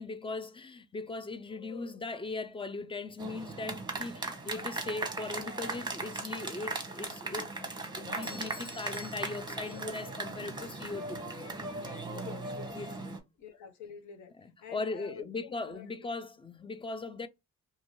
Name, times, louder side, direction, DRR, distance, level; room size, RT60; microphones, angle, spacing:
voice 1, 0.0-11.3 12.7-13.2 14.4-17.3, left 3 dB, 20° left, 0.4 m, -39 dB
sound 1, 3.2-13.2, right 3 dB, 15° right, 0.8 m, -38 dB
Doorbell, 8.2-10.2, left 2 dB, 45° left, 1.3 m, -51 dB
voice 2, 12.1-12.8 13.4-14.3 14.6-15.9, left 8 dB, 70° left, 0.9 m, -47 dB
2.7 x 2.6 x 2.9 m
cardioid pair, 90°, 30 cm